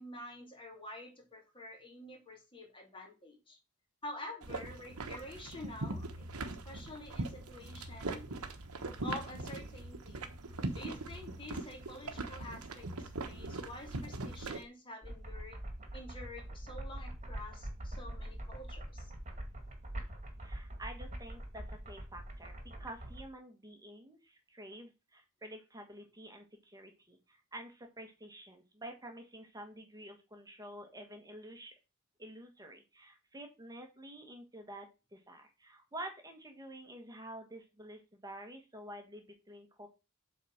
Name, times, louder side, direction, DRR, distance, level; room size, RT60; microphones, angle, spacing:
voice 1, 0.0-3.6 4.0-8.2 9.0-10.3 10.7-15.6 15.9-19.1, left 2 dB, 25° left, 1 dB, 2.8 m, -48 dB
sound 1, 4.4-14.6, right 2 dB, 90° right, 1.1 m, -41 dB
sound 2, 15.0-23.3, right 1 dB, 35° right, 1.9 m, -44 dB
voice 2, 20.4-31.7 32.2-39.9, right 1 dB, 15° right, 4 dB, 1.5 m, -49 dB
7.9 x 4.2 x 6.5 m, 0.28 s
head